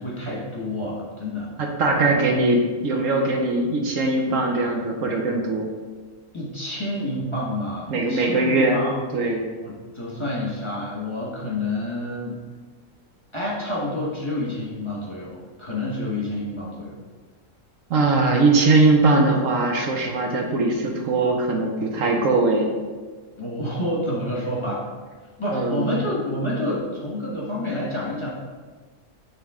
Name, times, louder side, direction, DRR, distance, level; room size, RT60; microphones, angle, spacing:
voice 1, 0.0-1.5 6.3-8.9 9.6-12.4 13.3-17.0 23.4-24.8 25.4-28.3, left 1 dB, 20° left, -6 dB, 1.4 m, -28 dB
voice 2, 1.6-5.7 7.9-8.8 9.1-9.4 17.9-22.7 25.5-26.0, right 2 dB, 70° right, 1 dB, 1.2 m, -21 dB
9.0 x 3.4 x 3.6 m, 1.4 s
omnidirectional pair, 1.4 m